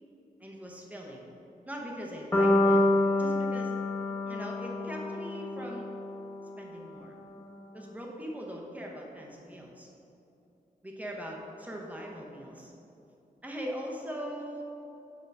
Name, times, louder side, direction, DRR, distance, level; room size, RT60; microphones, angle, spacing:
voice 1, 0.4-1.3 1.6-2.9 3.2-3.7 4.2-5.9 6.6-7.1 7.7-9.9 10.8-12.7 13.4-14.6, equal, 10° right, -2 dB, 0.8 m, -41 dB
sound 1, 2.3-6.4, left 1 dB, 20° left, 0.9 m, -27 dB
6.7 x 3.8 x 5.3 m, 2.8 s
wide cardioid pair, 155°, 15 cm